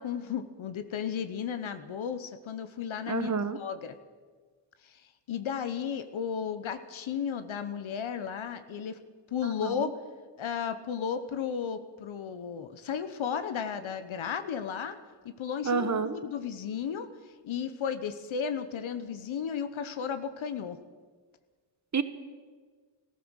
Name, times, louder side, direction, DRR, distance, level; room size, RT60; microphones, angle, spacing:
voice 1, 0.0-4.0 4.8-9.0 9.3-9.9 10.4-15.0 15.2-20.8, left 7 dB, 75° left, 10 dB, 1.0 m, -34 dB
voice 2, 3.1-3.6 9.4-9.9 15.6-16.1 21.9-22.0, right 5 dB, 35° right, 12 dB, 1.1 m, -29 dB
14.5 x 14.5 x 6.4 m, 1.5 s
cardioid pair, 60°, 48 cm